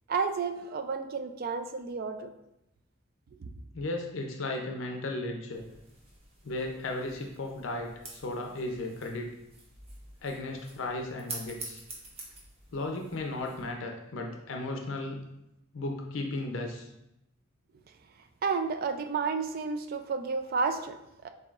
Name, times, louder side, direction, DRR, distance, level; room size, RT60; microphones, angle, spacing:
voice 1, 0.1-2.3 3.4-3.5 18.4-21.3, right 5 dB, 45° right, 7 dB, 0.3 m, -31 dB
voice 2, 3.7-5.6 6.4-9.3 10.2-11.8 12.7-15.2 15.7-16.9, left 2 dB, 65° left, 2 dB, 0.5 m, -35 dB
sound 1, 5.5-13.7, right 2 dB, 30° right, 0.8 m, -48 dB
6.9 x 2.7 x 2.4 m, 0.86 s
head